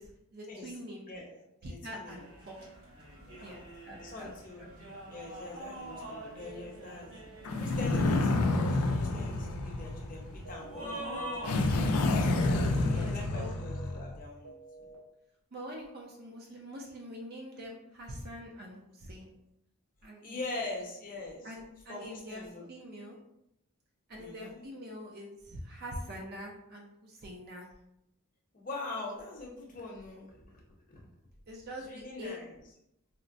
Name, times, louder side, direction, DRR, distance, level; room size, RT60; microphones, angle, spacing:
voice 1, 0.0-1.1 1.6-2.6 3.4-4.3 4.6-4.7 12.7-13.5 15.5-19.3 20.0-20.4 21.4-23.2 24.1-27.7 31.5-32.4, equal, 45° right, -1 dB, 0.4 m, -44 dB
voice 2, 1.1-2.2 3.3-3.6 4.0-4.6 5.1-7.3 7.6-12.2 12.8-14.9 20.2-21.5 21.9-22.7 24.2-24.6 28.5-30.3 30.9-31.0 31.8-32.5, left 2 dB, 40° left, -2 dB, 0.7 m, -43 dB
sound 1, 2.0-11.8, right 1 dB, 65° right, 1.0 m, -45 dB
sound 2, 7.4-10.5 11.4-14.2, left 2 dB, 85° left, 0.4 m, -29 dB
sound 3, 10.4-10.9 11.4-11.9 12.4-12.9 13.4-13.9 14.4-14.9, right 3 dB, 90° right, 0.9 m, -50 dB
4.2 x 2.1 x 2.5 m, 0.82 s
head